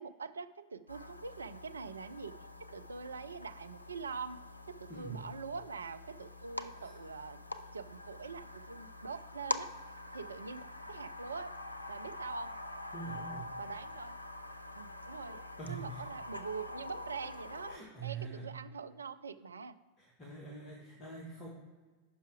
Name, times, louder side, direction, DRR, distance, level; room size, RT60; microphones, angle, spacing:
voice 1, 0.0-2.3 2.7-4.4 4.7-7.4 7.7-9.7 10.1-11.5 11.9-12.5 13.6-14.2 14.7-15.4 15.7-17.7 18.0-19.8, right 5 dB, 75° right, 12 dB, 0.3 m, -44 dB
sound 1, 0.9-17.8, left 1 dB, 85° left, 0.4 m, -45 dB
voice 2, 4.9-5.3 6.8-6.9 12.9-13.6 15.6-16.0 17.7-18.5 20.0-21.5, right 4 dB, 25° left, -3 dB, 1.3 m, -44 dB
6.8 x 5.6 x 4.5 m, 1.4 s
figure-of-eight pair, 90°, 0 cm